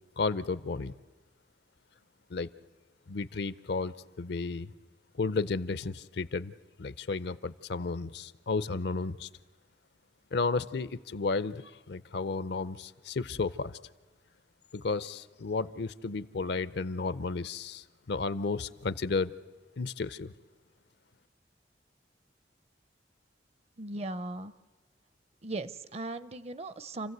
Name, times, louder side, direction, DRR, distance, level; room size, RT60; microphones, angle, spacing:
voice 1, 0.2-0.9 2.3-2.5 3.1-4.7 5.2-9.3 10.3-13.8 14.7-19.4 19.8-20.3, left 4 dB, 65° left, 17 dB, 0.6 m, -33 dB
voice 2, 23.8-24.5 25.4-27.1, right 2 dB, 35° right, 15 dB, 0.6 m, -38 dB
28.5 x 15.5 x 8.0 m, 1.3 s
head